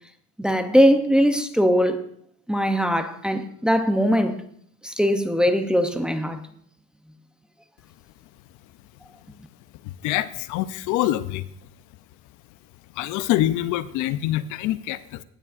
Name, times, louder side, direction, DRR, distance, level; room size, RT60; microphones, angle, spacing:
voice 1, 0.4-2.0 2.5-4.4 4.8-6.4, equal, 5° right, 0.5 m, -20 dB
voice 2, 9.8-11.5 13.0-15.2, left 14 dB, 75° left, 0.5 m, -25 dB
17.0 x 7.2 x 2.5 m
cardioid pair, 130°, 31 cm